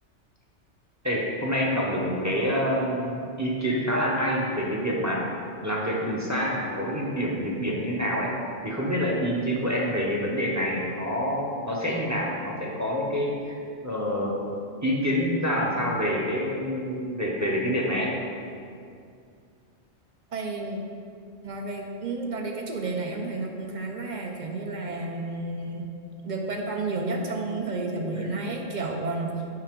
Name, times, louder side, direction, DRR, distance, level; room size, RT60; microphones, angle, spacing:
voice 1, 1.0-5.2 5.6-8.3 8.6-13.5 13.8-14.3 14.8-18.1 28.1-28.3, equal, 15° right, -3 dB, 0.8 m, -27 dB
voice 2, 20.3-20.8 21.4-25.9 26.2-29.3, right 3 dB, 45° right, 2 dB, 0.8 m, -31 dB
7.7 x 5.8 x 3.7 m, 2.4 s
omnidirectional pair, 1.2 m